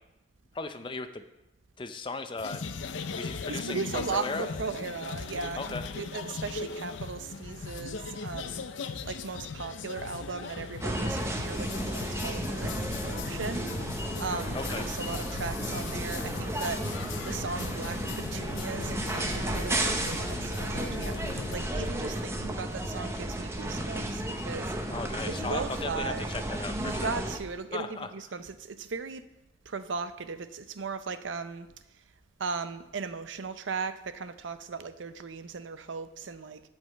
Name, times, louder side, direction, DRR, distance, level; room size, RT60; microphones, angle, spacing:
voice 1, 0.5-1.2 1.8-4.5 5.6-5.8 14.5-14.9 24.9-27.1 27.7-28.1, left 3 dB, 25° left, 9 dB, 0.5 m, -37 dB
sound 1, 2.4-21.6, left 5 dB, 80° left, 0.6 m, -39 dB
voice 2, 3.5-8.6 9.0-16.8 17.2-24.9 25.3-26.4 26.8-29.2 29.7-31.7 32.4-36.6, right 4 dB, 85° right, 11 dB, 0.6 m, -37 dB
sound 2, 10.8-27.4, right 1 dB, 15° right, 0.7 m, -33 dB
8.1 x 5.4 x 7.7 m, 0.92 s
head